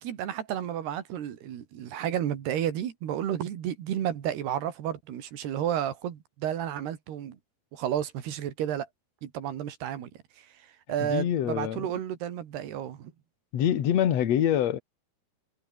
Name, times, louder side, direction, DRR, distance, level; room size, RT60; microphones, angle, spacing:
voice 1, 0.0-7.4 7.7-8.9 9.2-10.1 10.4-10.5 10.9-13.1, right 10 dB, 65° right, 4.2 m, -32 dB
voice 2, 11.0-11.9 13.5-14.8, left 10 dB, 50° left, 2.2 m, -25 dB
omnidirectional pair, 5.1 m